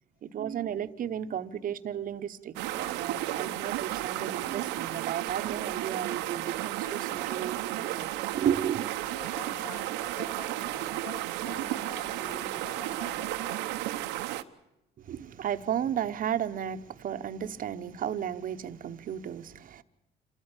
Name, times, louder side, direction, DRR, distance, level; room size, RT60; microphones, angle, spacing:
voice 1, 0.2-8.9 15.0-19.8, right 9 dB, 50° right, 1.1 m, -34 dB
sound 1, 2.6-14.4, right 15 dB, 90° right, 1.0 m, -33 dB
voice 2, 9.1-13.7, left 3 dB, 70° left, 6.9 m, -46 dB
27.5 x 13.5 x 8.8 m
cardioid pair, 95°, 18 cm